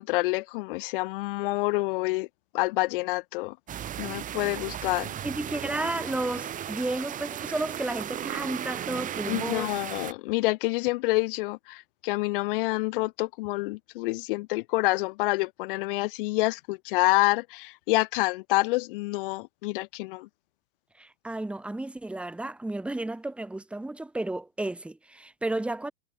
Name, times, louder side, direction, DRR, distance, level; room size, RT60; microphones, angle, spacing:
voice 1, 0.0-2.3 2.5-3.6 4.0-5.1 9.3-20.3, left 22 dB, 55° left, 1.5 m, -27 dB
sound 1, 3.7-10.1, right 10 dB, 25° right, 3.3 m, -35 dB
voice 2, 5.2-9.7 21.0-25.9, right 2 dB, 5° right, 2.1 m, -32 dB
supercardioid pair, 140°, 33 cm